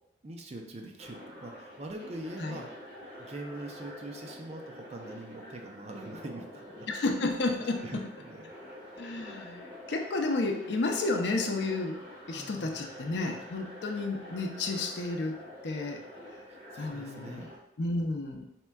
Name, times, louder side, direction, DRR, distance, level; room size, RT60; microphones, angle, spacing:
voice 1, 0.2-2.7 3.2-7.0 7.8-8.5 12.3-12.8 16.5-17.5, right 2 dB, 35° right, 2 dB, 0.4 m, -43 dB
sound 1, 1.0-17.6, left 1 dB, 10° right, 1.3 m, -47 dB
voice 2, 6.9-7.8 9.0-12.0 12.3-15.4 15.6-16.0 16.8-17.5 17.8-18.4, left 2 dB, 65° left, 2 dB, 0.5 m, -31 dB
4.3 x 3.5 x 2.2 m, 0.84 s
head